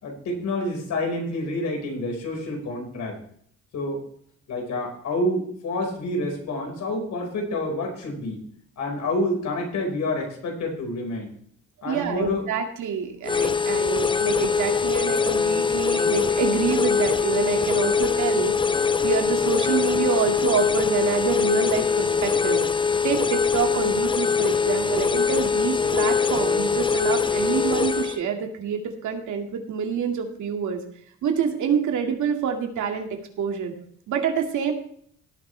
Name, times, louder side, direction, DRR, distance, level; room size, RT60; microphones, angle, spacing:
voice 1, 0.0-3.2 3.7-4.1 4.5-8.4 8.8-11.3 11.8-12.5, left 1 dB, 70° left, 2 dB, 5.1 m, -28 dB
voice 2, 11.9-22.6 23.0-30.8 31.2-33.1 33.4-33.7 34.1-34.7, right 7 dB, 75° right, 3 dB, 2.3 m, -27 dB
sound 1, 13.2-28.2, left 5 dB, 15° left, 0.5 m, -22 dB
17.5 x 9.2 x 3.4 m, 0.63 s
cardioid pair, 90°, 30 cm